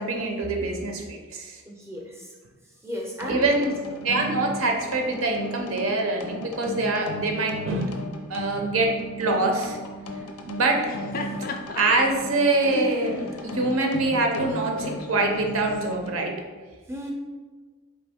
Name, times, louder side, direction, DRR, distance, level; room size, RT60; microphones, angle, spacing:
voice 1, 0.0-1.6 3.3-3.8 4.0-7.9 8.3-8.9 9.2-9.8 10.5-10.8 11.8-16.4, right 2 dB, 70° right, 2 dB, 0.7 m, -24 dB
voice 2, 1.7-2.3 2.6-3.4 16.9-17.1, equal, 10° right, -2 dB, 0.6 m, -35 dB
sound 1, 3.2-16.1, equal, 90° left, 0.6 m, -36 dB
Laughter, 10.7-15.9, left 2 dB, 40° left, 0.3 m, -36 dB
4.2 x 3.1 x 3.5 m, 1.4 s
head